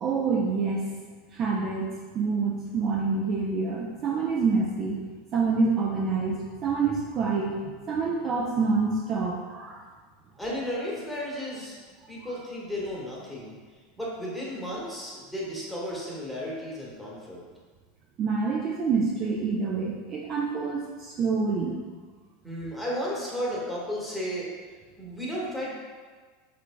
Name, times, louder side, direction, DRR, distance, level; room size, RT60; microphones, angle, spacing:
voice 1, 0.0-0.9 1.3-5.0 5.3-9.8 18.2-21.8, right 4 dB, 40° right, -1 dB, 0.5 m, -27 dB
voice 2, 10.4-11.8 12.1-13.6 14.0-17.4 22.4-24.5 25.0-25.7, equal, ahead, -6 dB, 1.5 m, -33 dB
5.6 x 3.4 x 2.2 m, 1.5 s
hypercardioid pair, 95°, 0 cm